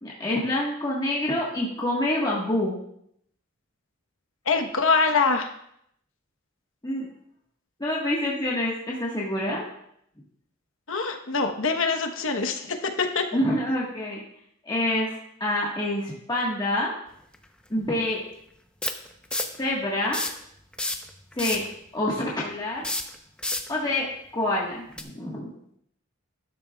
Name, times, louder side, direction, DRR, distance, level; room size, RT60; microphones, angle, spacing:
voice 1, 0.0-2.8 6.8-7.1 7.8-9.6 13.3-14.2 14.6-16.9 17.7-18.2 19.6-20.2 21.3-21.6 21.9-22.8 23.7-24.1 24.3-25.5, left 1 dB, 20° left, -5 dB, 1.4 m, -27 dB
voice 2, 4.5-5.5 10.9-13.2, left 4 dB, 70° left, 5 dB, 1.1 m, -24 dB
sound 1, 17.3-17.4 18.8-19.6 20.0-20.4 20.7-21.7 22.8-23.7 24.9-25.0, left 2 dB, 5° left, 0.7 m, -29 dB
12.5 x 10.5 x 2.3 m, 0.73 s
head